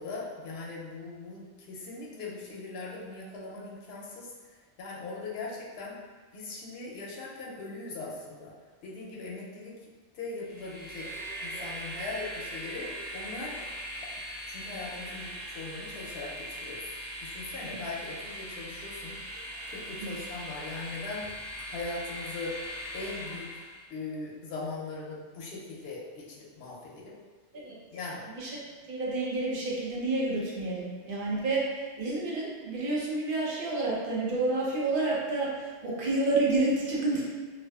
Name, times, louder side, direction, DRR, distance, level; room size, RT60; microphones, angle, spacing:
voice 1, 0.0-4.3 4.8-6.0 6.3-8.5 8.8-9.7 10.1-11.1 11.4-12.9 13.1-13.5 14.5-16.8 17.2-19.2 19.7-21.3 21.7-22.6 22.9-23.5 23.9-27.1 27.9-28.3, left 3 dB, 65° left, -5 dB, 0.7 m, -40 dB
Train, 10.4-23.8, equal, 10° right, 0.5 m, -40 dB
voice 2, 28.9-37.3, right 2 dB, 55° right, -5 dB, 0.7 m, -29 dB
2.4 x 2.4 x 2.2 m, 1.4 s
omnidirectional pair, 1.2 m